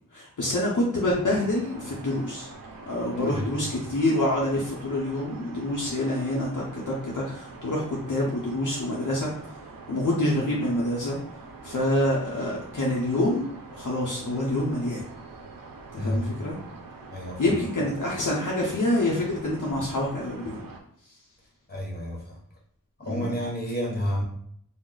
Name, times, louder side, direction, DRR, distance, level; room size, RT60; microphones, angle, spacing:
voice 1, 0.1-2.5 2.9-9.3 9.9-11.2 11.6-13.4 13.7-15.1 15.9-16.6 17.4-20.6 23.1-23.4, left 1 dB, 60° left, -4 dB, 0.6 m, -26 dB
sound 1, 1.0-20.8, right 3 dB, 80° right, 0.5 m, -45 dB
voice 2, 3.1-3.5 16.0-16.3 17.1-17.4 21.7-22.4 23.0-24.2, equal, 30° left, -3 dB, 1.1 m, -30 dB
2.3 x 2.0 x 3.8 m, 0.65 s
wide cardioid pair, 45°, 34 cm